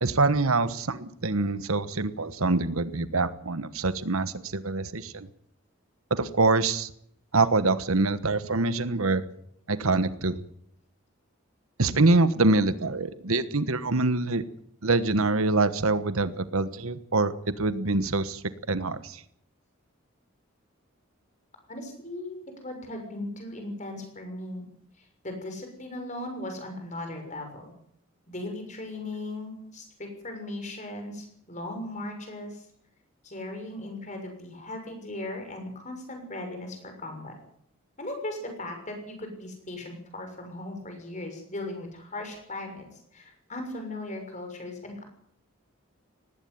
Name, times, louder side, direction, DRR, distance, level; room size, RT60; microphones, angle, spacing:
voice 1, 0.0-5.3 6.1-6.9 7.3-9.3 9.7-10.4 11.8-14.4 14.8-18.4 18.7-19.2, right 3 dB, 80° right, 13 dB, 1.3 m, -25 dB
voice 2, 21.7-22.4 22.6-24.7 25.0-27.7 28.3-32.7 33.2-37.3 38.0-45.0, left 1 dB, 35° left, 5 dB, 6.5 m, -38 dB
19.0 x 16.5 x 9.5 m, 0.69 s
head